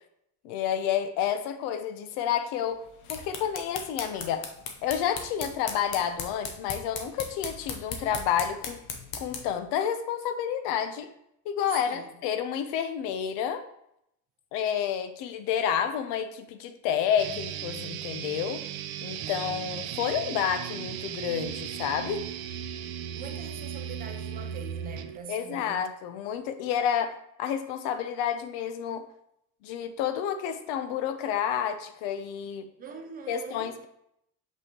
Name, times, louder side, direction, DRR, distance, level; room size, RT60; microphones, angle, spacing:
voice 1, 0.4-2.8 3.1-4.4 4.8-8.8 9.2-11.1 11.4-13.6 14.5-18.6 19.0-22.3 25.3-29.0 29.6-32.7 33.3-33.9, left 9 dB, 85° left, 0.7 m, -30 dB
sound 1, 2.8-9.6, left 5 dB, 60° left, 0.9 m, -39 dB
voice 2, 11.7-12.1 23.1-25.9 32.8-33.8, right 6 dB, 20° right, 0.4 m, -43 dB
sound 2, 17.2-25.2, right 9 dB, 65° right, 0.6 m, -36 dB
6.2 x 5.5 x 2.9 m
cardioid pair, 175°, 41 cm